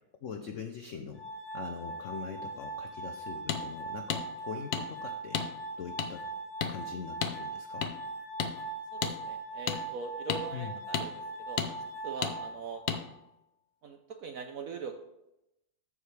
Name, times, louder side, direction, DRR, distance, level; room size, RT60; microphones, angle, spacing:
voice 1, 0.2-1.2 1.5-6.3 6.7-7.9 10.5-10.8, left 6 dB, 80° left, 5 dB, 0.6 m, -42 dB
Glass, 1.2-13.2, right 2 dB, 35° left, 2.7 m, -40 dB
sound 1, 3.5-3.6 4.1-4.2 4.7-4.8 5.3-5.5 6.0-6.1 6.6-6.7 7.2-7.4 7.8-7.9 8.4-8.5 9.0-9.1 9.7-9.8 10.3-10.4 10.9-11.1 11.6-11.7 12.2-12.3 12.9-13.0, left 8 dB, 65° left, 1.1 m, -31 dB
voice 2, 8.9-12.8 13.8-15.0, right 5 dB, 70° right, 5 dB, 0.8 m, -42 dB
13.5 x 4.8 x 3.3 m, 0.88 s
omnidirectional pair, 2.1 m